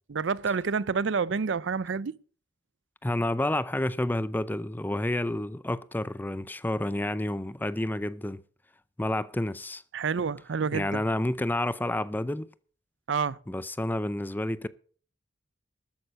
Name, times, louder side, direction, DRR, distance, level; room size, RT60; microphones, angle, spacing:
voice 1, 0.1-2.1 9.9-11.0 13.1-13.4, right 5 dB, 75° right, 0.5 m, -28 dB
voice 2, 3.0-8.4 9.0-9.8 10.7-12.5 13.5-14.7, left 1 dB, 10° left, 0.5 m, -29 dB
13.5 x 9.1 x 6.3 m
head